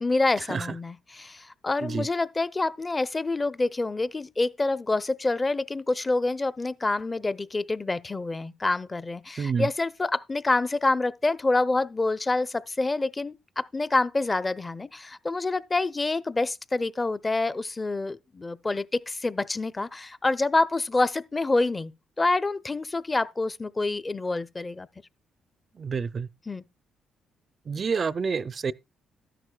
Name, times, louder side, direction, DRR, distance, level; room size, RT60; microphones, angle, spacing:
voice 1, 0.0-21.9 22.2-24.9 26.5-26.6, left 2 dB, 20° left, 0.6 m, -27 dB
voice 2, 25.8-26.3 27.7-28.7, right 5 dB, 40° right, 0.4 m, -28 dB
13.0 x 11.0 x 2.3 m
cardioid pair, 90°, 0 cm